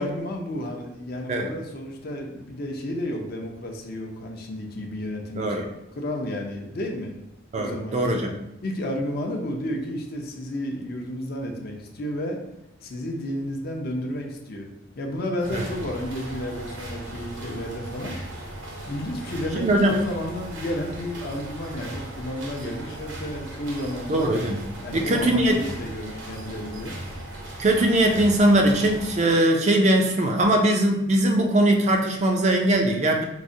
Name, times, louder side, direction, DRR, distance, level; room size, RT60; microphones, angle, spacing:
voice 1, 0.0-5.7 5.9-7.1 7.5-8.2 8.6-12.4 12.8-14.7 15.0-18.2 18.9-24.3 24.8-27.0, left 1 dB, 50° left, 1 dB, 0.5 m, -32 dB
voice 2, 7.5-8.3 15.5-15.6 19.6-19.9 24.1-24.6 24.9-25.6 27.6-33.2, right 1 dB, 35° right, 2 dB, 0.3 m, -21 dB
sound 1, 15.4-29.2, right 1 dB, 70° right, 0.7 m, -37 dB
4.7 x 2.1 x 2.6 m, 0.86 s
head